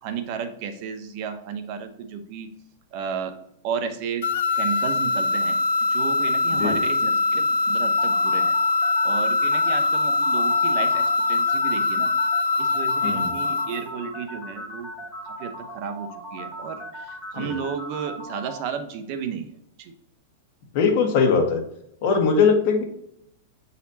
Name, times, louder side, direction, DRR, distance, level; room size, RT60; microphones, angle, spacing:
voice 1, 0.0-2.5 2.9-3.3 3.6-4.2 4.6-5.6 5.9-8.6 9.0-12.1 12.6-14.9 15.2-19.5 19.8-19.9, right 6 dB, 45° right, 7 dB, 0.9 m, -33 dB
sound 1, 4.2-13.8, left 3 dB, 75° left, 0.5 m, -22 dB
sound 2, 8.0-18.6, right 1 dB, ahead, 2.3 m, -38 dB
voice 2, 20.7-21.6 22.0-22.8, left 5 dB, 50° left, 3 dB, 1.6 m, -20 dB
8.3 x 4.2 x 2.8 m, 0.74 s
supercardioid pair, 145°, 0 cm